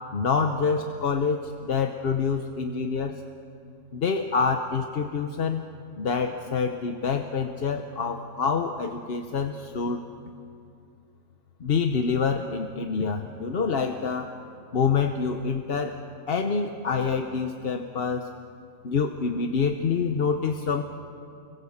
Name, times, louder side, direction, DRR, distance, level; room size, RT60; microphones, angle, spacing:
voice 1, 0.1-3.2 3.9-5.6 6.0-10.0 11.6-14.4 14.7-16.0 16.3-18.3 18.8-20.8, left 5 dB, 45° left, 5 dB, 1.1 m, -26 dB
29.5 x 23.0 x 7.3 m, 2.6 s
omnidirectional pair, 1.5 m